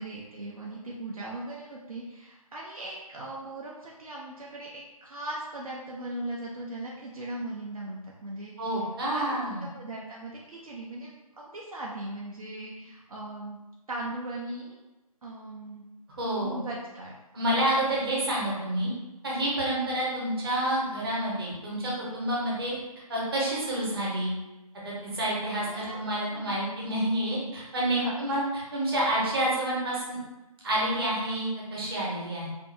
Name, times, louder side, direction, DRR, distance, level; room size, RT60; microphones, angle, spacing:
voice 1, 0.0-13.6 13.9-14.8 15.2-15.9 16.4-17.2 17.7-17.8 25.6-26.0 26.3-26.6 27.9-28.3, right 1 dB, 70° right, -4 dB, 0.5 m, -39 dB
voice 2, 8.6-9.6 16.2-16.6 17.3-18.9 19.2-22.8 23.1-24.3 24.8-28.4 28.7-30.2 30.6-32.5, right 1 dB, 40° right, -5 dB, 0.9 m, -28 dB
2.6 x 2.3 x 2.5 m, 1.1 s
figure-of-eight pair, 155°, 19 cm